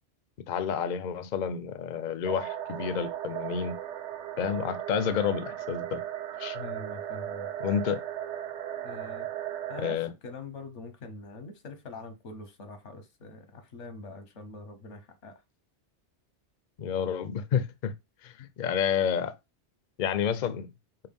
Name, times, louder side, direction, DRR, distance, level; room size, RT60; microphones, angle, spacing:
voice 1, 0.5-3.8 4.4-6.0 6.4-6.6 7.6-8.0 9.8-10.1 16.8-17.9 18.2-19.3 20.0-20.7, left 8 dB, 55° left, 0.5 m, -30 dB
sound 1, 2.3-10.0, right 11 dB, 80° right, 0.9 m, -36 dB
voice 2, 6.5-7.5 8.8-9.3 9.7-15.4 18.4-18.5, left 3 dB, 85° left, 1.3 m, -44 dB
5.5 x 2.3 x 3.5 m
omnidirectional pair, 1.2 m